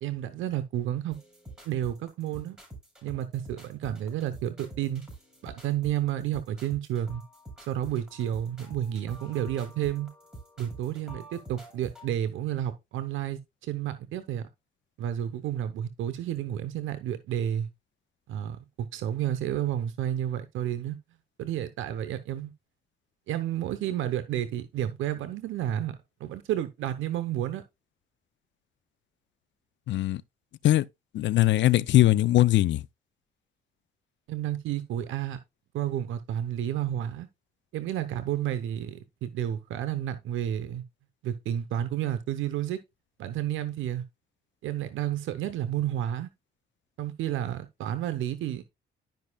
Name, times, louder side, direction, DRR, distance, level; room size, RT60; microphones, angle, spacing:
voice 1, 0.0-1.2 1.6-2.6 3.0-5.0 5.4-7.2 7.7-10.1 10.6-14.5 15.0-17.7 18.3-21.0 21.4-22.5 23.3-27.6 34.3-35.4 35.7-37.3 37.7-40.8 41.2-42.8 43.2-44.0 44.6-46.3 47.0-48.6, right 11 dB, 85° right, 0.9 m, -31 dB
sound 1, 1.1-12.1, right 1 dB, 5° right, 5.6 m, -47 dB
voice 2, 29.9-30.2 30.6-30.8 31.1-32.8, left 15 dB, 65° left, 0.5 m, -21 dB
12.0 x 5.4 x 2.3 m
cardioid pair, 90°, 20 cm